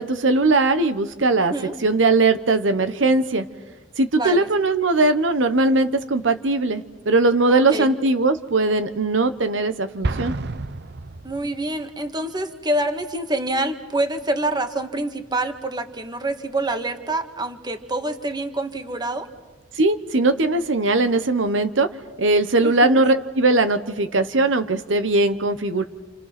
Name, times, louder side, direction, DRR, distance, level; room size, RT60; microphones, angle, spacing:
voice 1, 0.0-1.5 1.8-3.4 4.0-10.3 19.8-21.9 22.2-25.9, right 2 dB, 75° right, 10 dB, 1.1 m, -20 dB
voice 2, 4.1-4.5 7.5-7.9 11.2-19.3 22.6-23.0, right 1 dB, 20° right, 7 dB, 1.7 m, -26 dB
Explosion, 10.0-11.9, right 2 dB, 60° right, 0.8 m, -29 dB
29.5 x 28.5 x 6.0 m, 1.2 s
head